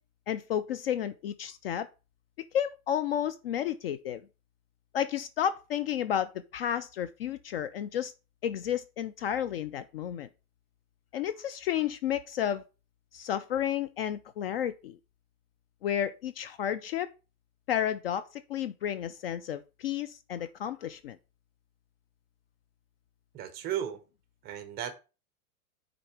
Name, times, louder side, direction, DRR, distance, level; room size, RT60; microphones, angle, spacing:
voice 1, 0.3-1.9 2.5-4.2 4.9-8.1 8.4-10.3 11.1-12.6 13.1-15.0 15.8-17.1 17.7-18.2 18.5-21.2, left 10 dB, 45° left, 0.4 m, -31 dB
voice 2, 23.3-24.0 24.4-24.9, right 10 dB, 20° right, 0.9 m, -35 dB
6.4 x 4.0 x 5.9 m
hypercardioid pair, 145°, 44 cm